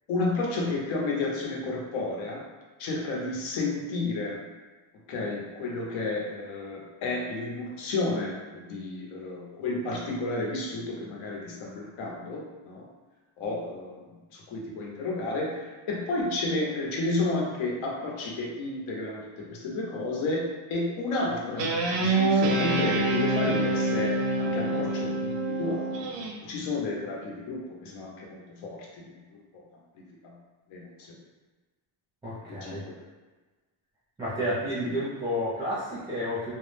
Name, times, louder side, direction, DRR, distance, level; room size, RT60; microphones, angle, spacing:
voice 1, 0.1-2.4 2.8-4.4 5.1-12.9 13.4-26.0 26.4-29.4 29.9-30.4 30.7-31.1 32.5-32.7 34.4-34.5 34.8-35.0, left 2 dB, 75° left, -2 dB, 0.8 m, -32 dB
Guitar, 21.6-26.3, right 2 dB, 60° right, 0.6 m, -26 dB
voice 2, 32.2-32.8 34.2-36.5, equal, 10° right, -10 dB, 0.5 m, -31 dB
2.3 x 2.1 x 3.2 m, 1.3 s
cardioid pair, 135°, 47 cm